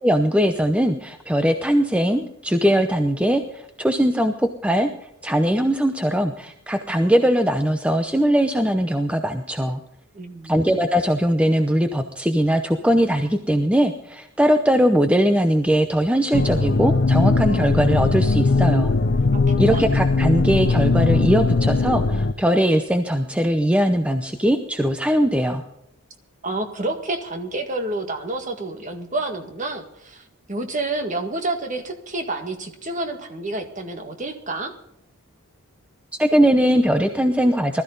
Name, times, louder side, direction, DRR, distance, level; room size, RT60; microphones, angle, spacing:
voice 1, 0.0-4.9 5.2-9.8 10.4-18.9 19.6-25.6 36.2-37.8, equal, 5° right, 6 dB, 0.7 m, -20 dB
voice 2, 10.1-10.6 19.3-19.4 19.7-19.8 26.4-34.7, right 2 dB, 35° right, 5 dB, 1.9 m, -29 dB
sound 1, 16.3-22.3, left 3 dB, 50° left, 0.6 m, -19 dB
20.0 x 13.5 x 4.0 m, 0.80 s
head